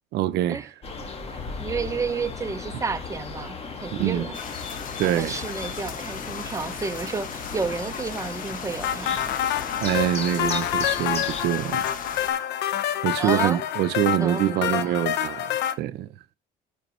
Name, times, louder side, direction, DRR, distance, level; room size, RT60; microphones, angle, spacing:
voice 1, 0.1-0.7 3.9-4.3 5.0-5.4 9.8-12.5 13.0-15.5 15.8-16.1, right 13 dB, 80° right, 0.6 m, -25 dB
sound 1, 0.8-11.4, left 4 dB, 35° left, 1.9 m, -36 dB
voice 2, 1.0-4.4 5.0-9.2 13.2-13.6 14.2-15.0, right 4 dB, 20° right, 0.9 m, -31 dB
sound 2, 4.3-12.3, left 7 dB, 55° left, 1.3 m, -37 dB
sound 3, 8.8-15.7, left 10 dB, 90° left, 0.9 m, -27 dB
14.0 x 5.1 x 3.1 m
cardioid pair, 110°, 17 cm